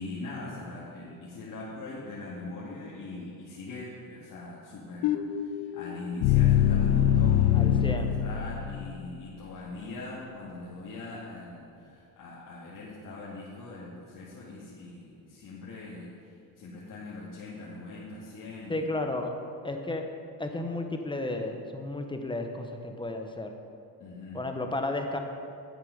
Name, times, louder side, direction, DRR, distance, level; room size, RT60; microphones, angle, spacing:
voice 1, 0.0-18.9 24.0-24.5, left 2 dB, 60° left, -7 dB, 2.2 m, -41 dB
Synthesized horn, 5.0-9.1, left 10 dB, 90° left, 0.6 m, -24 dB
voice 2, 7.5-8.2 18.7-19.3 19.6-20.0 20.4-23.5 24.3-25.2, left 2 dB, 15° left, 4 dB, 1.0 m, -33 dB
10.0 x 8.3 x 5.2 m, 2.5 s
cardioid pair, 95°, 38 cm